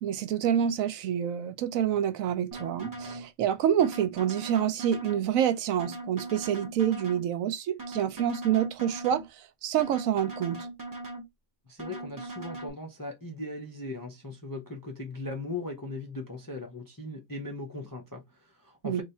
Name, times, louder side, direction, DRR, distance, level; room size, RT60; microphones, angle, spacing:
voice 1, 0.0-9.2 9.6-10.6 18.8-19.0, right 9 dB, 80° right, 1.0 m, -27 dB
sound 1, 2.5-3.3 3.8-5.3 5.8-7.3 7.8-9.3 9.8-11.3 11.8-12.7, right 2 dB, 20° right, 0.6 m, -40 dB
voice 2, 11.7-19.0, left 2 dB, 30° left, 0.4 m, -39 dB
3.4 x 2.4 x 4.1 m
omnidirectional pair, 1.4 m